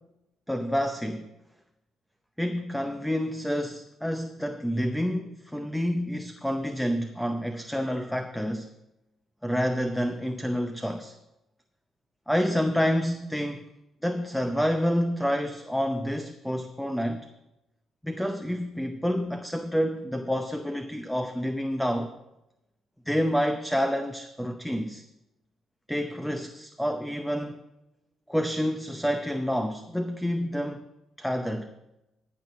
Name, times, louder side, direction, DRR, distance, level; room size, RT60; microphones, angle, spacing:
voice 1, 0.5-1.3 2.4-8.7 9.4-11.1 12.3-13.7 14.0-17.3 18.0-22.1 23.1-25.0 25.9-27.6 28.3-30.9 31.2-31.7, equal, ahead, 0.7 m, -28 dB
15.0 x 5.9 x 5.1 m
supercardioid pair, 65°, 0 cm